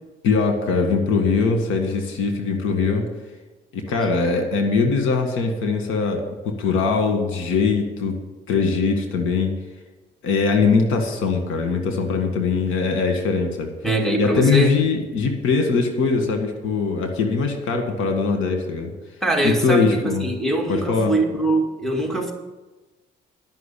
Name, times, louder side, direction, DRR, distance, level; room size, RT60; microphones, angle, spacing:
voice 1, 0.2-3.0 3.7-8.2 8.5-9.5 10.2-13.7 14.2-18.9 19.4-20.3 20.7-21.1, left 4 dB, 85° left, 4 dB, 1.8 m, -21 dB
voice 2, 13.8-14.8 19.2-22.3, right 2 dB, ahead, 0 dB, 2.1 m, -22 dB
12.0 x 6.0 x 8.4 m, 1.2 s
cardioid pair, 90°, 20 cm